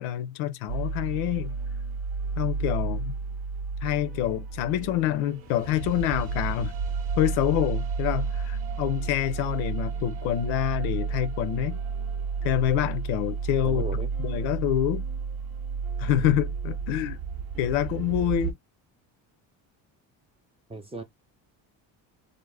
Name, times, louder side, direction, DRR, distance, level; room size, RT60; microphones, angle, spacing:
voice 1, 0.0-1.5 2.4-3.1 3.8-6.7 7.2-11.8 12.4-13.8 14.2-15.0 16.0-17.2 17.6-18.5, left 12 dB, 90° left, 0.6 m, -27 dB
sound 1, 0.7-18.5, right 5 dB, 90° right, 0.7 m, -31 dB
voice 2, 13.6-14.1 20.7-21.0, right 1 dB, 15° right, 0.4 m, -36 dB
2.5 x 2.0 x 3.2 m
supercardioid pair, 85°, 47 cm